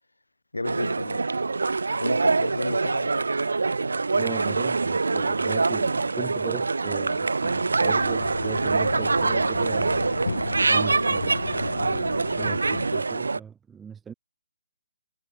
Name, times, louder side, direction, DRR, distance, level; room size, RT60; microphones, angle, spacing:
voice 1, 0.5-1.3 2.0-3.3, left 2 dB, 85° left, 5.1 m, -32 dB
sound 1, 0.6-13.4, right 3 dB, 75° right, 3.7 m, -25 dB
voice 2, 4.1-10.0 10.7-14.1, right 7 dB, 10° right, 5.9 m, -39 dB
sound 2, 7.8-12.9, left 4 dB, 70° left, 4.3 m, -34 dB
figure-of-eight pair, 140°, 0 cm